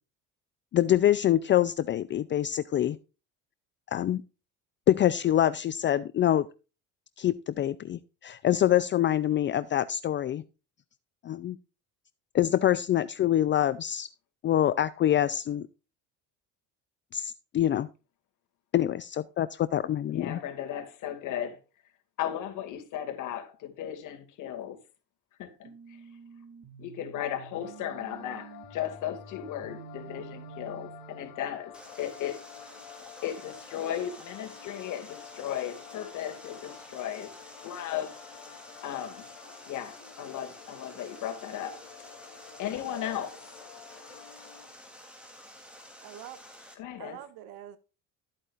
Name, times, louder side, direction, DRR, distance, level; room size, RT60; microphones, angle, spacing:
voice 1, 0.7-3.0 3.9-4.2 4.9-6.5 7.2-10.4 11.2-11.6 12.3-14.1 14.4-15.7 17.1-17.9 18.7-20.4, left 11 dB, 35° left, 0.5 m, -25 dB
voice 2, 20.1-21.6 22.2-24.8 25.4-25.7 26.8-32.4 33.2-37.3 37.6-38.2 38.8-39.3 39.7-41.8 42.6-43.4 46.8-47.2, left 10 dB, 60° left, 2.4 m, -36 dB
sound 1, 25.6-31.6, right 7 dB, 45° right, 3.0 m, -49 dB
sound 2, 27.5-44.7, left 10 dB, 80° left, 3.4 m, -50 dB
Water, 31.7-46.7, equal, 5° right, 3.2 m, -50 dB
voice 3, 46.0-46.4 47.0-47.8, right 11 dB, 85° right, 1.9 m, -44 dB
13.0 x 8.6 x 2.5 m
cardioid pair, 115°, 34 cm